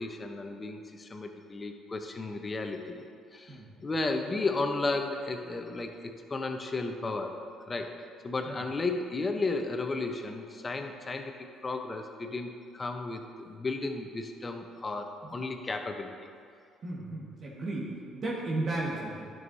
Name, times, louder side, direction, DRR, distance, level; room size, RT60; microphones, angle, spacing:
voice 1, 0.0-3.0 3.3-7.4 7.7-8.0 8.2-11.3 11.6-16.1, left 3 dB, 30° left, 5 dB, 0.8 m, -34 dB
voice 2, 3.5-3.9 8.4-8.6 15.2-15.3 16.8-19.2, right 2 dB, 50° right, -6 dB, 1.6 m, -35 dB
10.5 x 6.3 x 2.7 m, 2.4 s
supercardioid pair, 70°, 0 cm